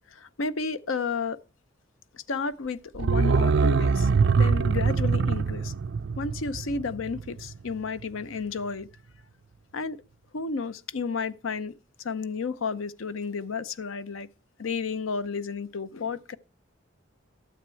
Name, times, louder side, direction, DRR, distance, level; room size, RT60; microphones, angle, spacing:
voice 1, 0.1-1.4 2.1-4.1 4.3-5.7 6.2-8.9 9.7-10.0 10.3-11.7 12.0-14.3 14.6-16.4, left 4 dB, 90° left, 0.7 m, -32 dB
sound 1, 2.9-7.7 8.0-8.1, right 5 dB, 60° right, 0.4 m, -24 dB
13.0 x 7.2 x 4.5 m
head